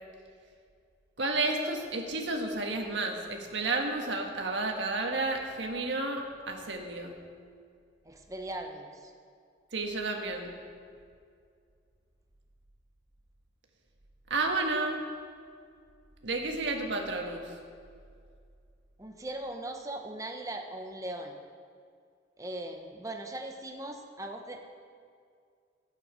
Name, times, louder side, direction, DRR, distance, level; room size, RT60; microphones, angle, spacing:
voice 1, 1.2-7.2 9.7-10.6 14.3-15.0 16.2-17.5, right 2 dB, 80° right, 2 dB, 1.5 m, -31 dB
voice 2, 8.0-9.1 19.0-21.3 22.4-24.6, right 1 dB, 15° right, 4 dB, 0.9 m, -39 dB
13.5 x 8.9 x 5.1 m, 2.2 s
head